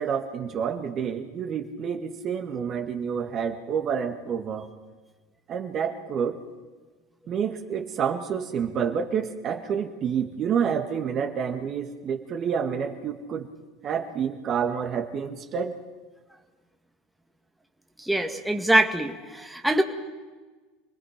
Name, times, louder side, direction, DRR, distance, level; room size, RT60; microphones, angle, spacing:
voice 1, 0.0-4.6 5.5-6.4 7.3-13.5 13.8-15.8, right 7 dB, 45° right, 4 dB, 2.1 m, -28 dB
voice 2, 18.0-19.8, right 1 dB, ahead, 3 dB, 2.0 m, -23 dB
29.0 x 20.0 x 5.3 m, 1.3 s
hypercardioid pair, 85°, 0 cm